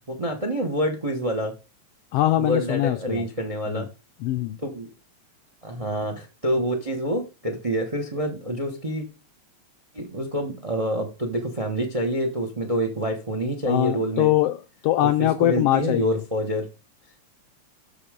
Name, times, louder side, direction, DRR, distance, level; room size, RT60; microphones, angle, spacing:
voice 1, 0.1-1.5 2.3-3.9 4.6-4.9 5.6-9.1 9.9-14.3 15.0-16.7, right 1 dB, 45° right, 6 dB, 0.4 m, -27 dB
voice 2, 2.1-3.2 3.7-3.9 4.2-4.6 13.7-16.2, left 14 dB, 80° left, 9 dB, 1.3 m, -22 dB
12.5 x 4.3 x 5.1 m, 0.31 s
omnidirectional pair, 3.3 m